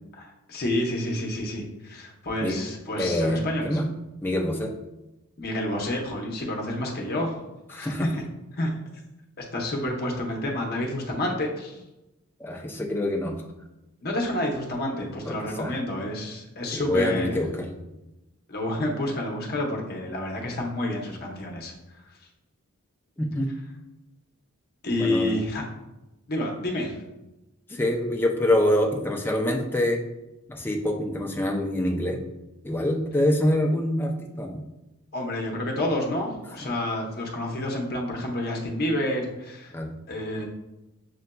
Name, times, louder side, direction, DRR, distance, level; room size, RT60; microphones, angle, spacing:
voice 1, 0.2-3.8 5.4-7.4 7.7-8.2 8.6-8.7 9.4-11.8 14.0-17.4 18.5-21.7 24.8-25.6 26.3-27.0 35.1-39.7 40.1-40.5, left 1 dB, 45° left, 0 dB, 0.8 m, -29 dB
voice 2, 3.0-3.8 4.2-4.7 7.7-8.1 12.4-13.4 15.3-15.7 16.7-17.8 23.2-23.5 25.0-25.3 27.7-30.0 30.5-32.2 32.6-34.6 39.7-39.9, left 1 dB, 10° left, 1 dB, 0.4 m, -25 dB
6.6 x 2.6 x 2.2 m, 0.97 s
head